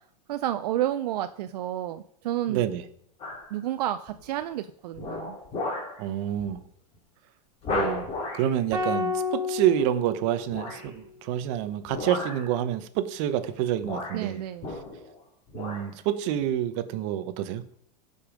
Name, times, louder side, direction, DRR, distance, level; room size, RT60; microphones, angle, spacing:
voice 1, 0.3-2.7 3.5-5.4 14.1-14.7, right 12 dB, 75° right, 10 dB, 0.6 m, -30 dB
voice 2, 2.5-2.8 6.0-6.6 7.7-8.1 8.3-14.4 15.5-17.6, right 11 dB, 50° right, 11 dB, 1.0 m, -28 dB
sound 1, 3.2-3.5 4.1-4.4 4.9-6.0 6.4-6.6 6.9-7.0 7.6-8.5 10.5-10.9 11.8-12.5 13.4-13.5 13.8-15.2 15.5-15.9 16.4-16.5, left 2 dB, 30° left, 3.1 m, -34 dB
sound 2, 8.7-11.0, left 4 dB, 15° right, 2.6 m, -31 dB
15.0 x 5.6 x 5.2 m, 0.68 s
supercardioid pair, 150°, 21 cm